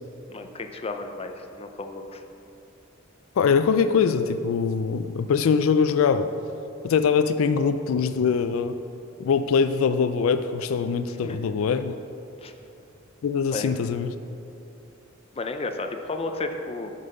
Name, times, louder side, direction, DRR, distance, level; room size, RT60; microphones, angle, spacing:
voice 1, 0.3-2.2 11.2-11.4 12.4-12.5 13.5-13.7 15.3-16.9, left 3 dB, 30° left, 6 dB, 0.5 m, -33 dB
voice 2, 3.4-6.3 6.8-8.8 9.2-11.9 13.2-14.1, left 6 dB, 80° left, 11 dB, 0.3 m, -22 dB
9.5 x 5.6 x 5.2 m, 2.8 s
head